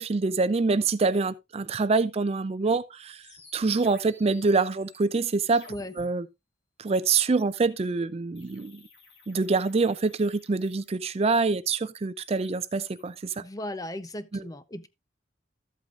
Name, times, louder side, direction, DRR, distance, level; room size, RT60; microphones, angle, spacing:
voice 1, 0.0-3.2 3.5-5.7 6.0-6.3 6.8-8.8 9.3-13.4 14.3-14.4, right 4 dB, 35° right, 0.4 m, -25 dB
sound 1, 3.2-6.1 8.4-11.2 12.0-13.2, left 3 dB, 65° left, 3.0 m, -54 dB
voice 2, 13.4-14.9, left 1 dB, 20° left, 0.6 m, -36 dB
13.0 x 8.4 x 2.4 m
head